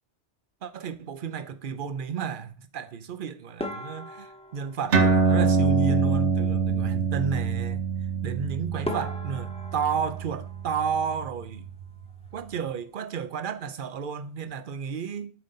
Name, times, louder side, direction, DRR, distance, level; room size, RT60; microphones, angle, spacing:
voice 1, 0.6-7.8 8.2-11.6 12.3-15.3, right 6 dB, 55° right, 0.8 m, -32 dB
sound 1, 3.6-6.1 8.3-8.4 8.8-11.6 11.9-12.7 13.0-13.2 13.5-13.6 14.2-14.5, left 1 dB, 5° left, 0.9 m, -40 dB
sound 2, 4.9-11.8, right 5 dB, 85° right, 1.4 m, -25 dB
7.8 x 3.9 x 5.4 m
omnidirectional pair, 1.2 m